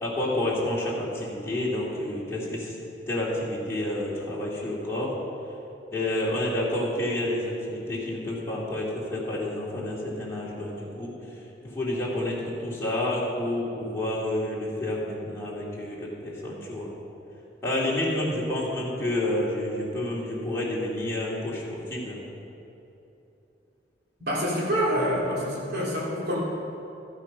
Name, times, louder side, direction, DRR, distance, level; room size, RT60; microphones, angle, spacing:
voice 1, 0.0-2.8 3.1-5.2 5.9-11.2 11.6-16.9 17.6-22.2, left 1 dB, 15° left, -6 dB, 2.5 m, -29 dB
voice 2, 24.3-26.4, equal, 60° right, -5 dB, 3.0 m, -26 dB
13.5 x 8.7 x 5.4 m, 2.9 s
head